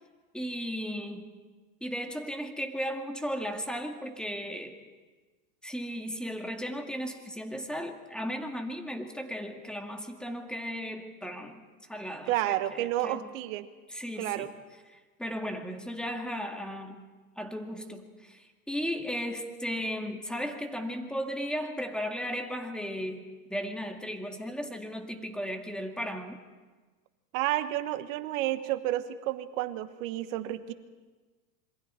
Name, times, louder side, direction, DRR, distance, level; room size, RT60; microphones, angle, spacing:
voice 1, 0.3-1.3 1.8-4.8 5.6-11.6 11.9-13.3 13.9-14.5 15.2-17.0 17.4-26.4, equal, ahead, 4 dB, 2.0 m, -35 dB
voice 2, 12.3-13.7 14.2-14.5 27.3-30.7, right 14 dB, 60° right, 11 dB, 1.4 m, -31 dB
27.0 x 23.0 x 4.4 m, 1.3 s
hypercardioid pair, 115°, 46 cm